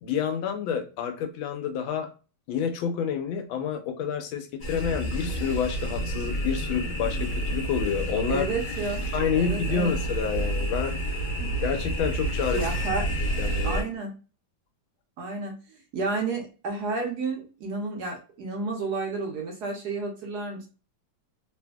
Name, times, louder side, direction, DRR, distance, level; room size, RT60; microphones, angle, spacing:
voice 1, 0.0-2.1 2.5-8.5 9.1-10.9 11.6-12.6 13.4-13.8, left 7 dB, 85° left, 6 dB, 1.4 m, -28 dB
sound 1, 4.6-13.8, right 1 dB, 50° left, 1.1 m, -29 dB
voice 2, 8.3-9.0 9.4-9.9 11.4-11.5 12.5-13.1 13.6-14.1 15.2-20.7, right 3 dB, 65° right, 1 dB, 1.2 m, -31 dB
3.3 x 2.6 x 2.2 m, 0.34 s
omnidirectional pair, 2.1 m